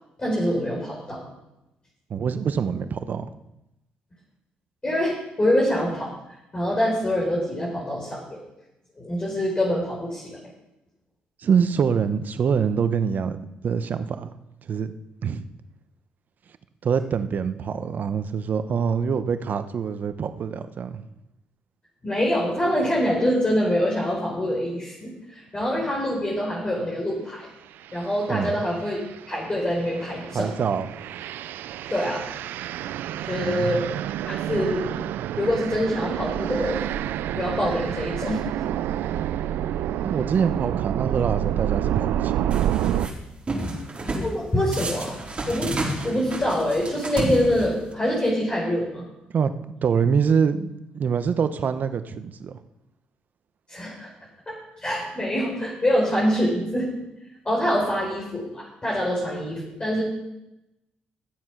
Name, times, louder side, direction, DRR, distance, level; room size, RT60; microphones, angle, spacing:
voice 1, 0.2-1.2 4.8-6.1 6.5-8.4 9.0-10.4 22.0-27.5 27.9-29.0 29.3-30.5 31.9-32.2 33.3-33.9 34.2-35.0 35.4-36.8 37.4-38.4 44.2-45.2 45.5-45.7 46.0-49.1 53.7-54.1 54.5-56.9 57.4-60.0, equal, 25° left, -4 dB, 4.2 m, -25 dB
voice 2, 2.1-3.3 11.4-14.3 14.7-14.9 15.2-15.5 16.8-21.1 28.3-28.5 30.3-30.9 33.4-33.9 40.0-42.7 49.3-49.5 49.8-52.6, right 6 dB, 55° right, 11 dB, 1.0 m, -25 dB
sound 1, 27.8-28.1 28.6-43.1, right 11 dB, 75° right, 0.4 m, -28 dB
sound 2, 42.5-43.1 43.5-44.3 44.7-47.9, right 2 dB, 30° right, 4.1 m, -30 dB
13.5 x 7.7 x 5.9 m, 0.91 s
supercardioid pair, 60°, 3 cm